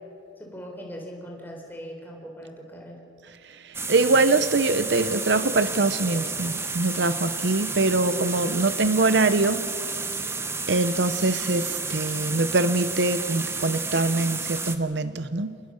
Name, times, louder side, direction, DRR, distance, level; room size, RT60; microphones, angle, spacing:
voice 1, 0.4-3.0, equal, 10° left, 0 dB, 3.8 m, -40 dB
voice 2, 3.5-9.7 10.7-15.6, right 3 dB, 65° right, 12 dB, 0.8 m, -23 dB
sound 1, 3.7-14.8, right 4 dB, 15° right, 1.0 m, -31 dB
27.5 x 20.5 x 6.4 m, 2.4 s
head